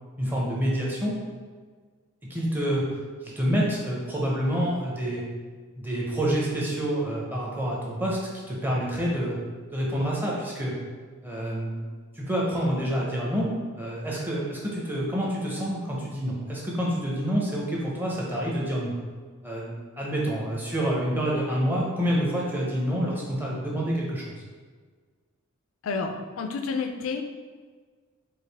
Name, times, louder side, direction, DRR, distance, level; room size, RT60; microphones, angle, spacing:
voice 1, 0.2-1.1 2.2-2.9 3.2-5.2 5.8-8.2 8.5-9.4 9.7-10.7 11.2-11.9 12.1-13.5 13.8-19.0 19.4-24.3, equal, 10° right, -4 dB, 0.7 m, -27 dB
voice 2, 25.8-27.2, left 4 dB, 65° left, 6 dB, 0.4 m, -30 dB
4.8 x 2.5 x 3.4 m, 1.5 s
head